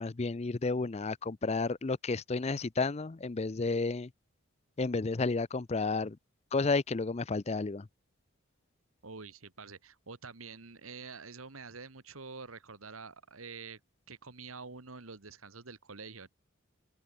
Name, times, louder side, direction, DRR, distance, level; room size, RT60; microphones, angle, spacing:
voice 1, 0.0-4.1 4.8-6.2 6.5-7.9, left 3 dB, 30° left, 0.5 m, -31 dB
voice 2, 9.0-13.8 14.1-16.3, right 4 dB, 90° right, 1.9 m, -47 dB
head